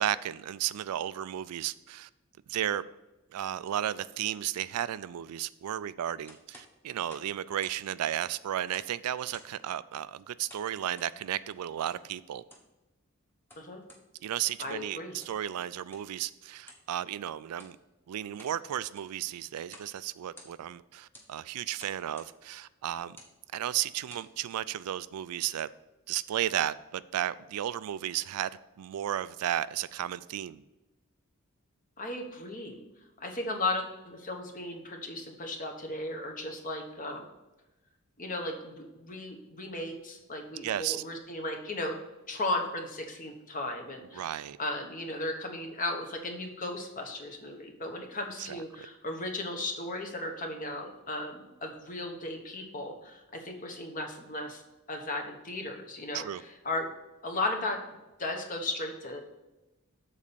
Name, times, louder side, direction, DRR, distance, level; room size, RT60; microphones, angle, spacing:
voice 1, 0.0-2.1 2.5-2.8 3.3-12.4 14.2-17.8 18.1-23.2 23.5-25.7 26.1-28.5 28.8-30.6 40.6-41.0 44.1-44.6 48.4-48.9 56.1-56.4, right 11 dB, 90° right, 0.3 m, -34 dB
sound 1, 6.3-7.8 8.1-9.0 9.3-9.7 10.5-11.1 11.9-12.0 12.4-12.7 13.3-14.0 14.5-14.8 15.2-15.4 15.9-16.1 16.6-16.9 17.5-17.8 18.2-18.6 18.9-19.2 19.7-19.9 20.2-20.8 21.1-21.3 21.8-22.3 23.0-23.4 23.9-24.3, left 1 dB, 10° left, 1.1 m, -53 dB
voice 2, 14.6-15.1 32.0-32.8 33.2-37.2 38.2-42.0 42.3-54.6 54.9-56.9 57.2-57.8 58.2-59.2, left 2 dB, 35° left, 1.1 m, -36 dB
7.4 x 4.2 x 6.8 m
head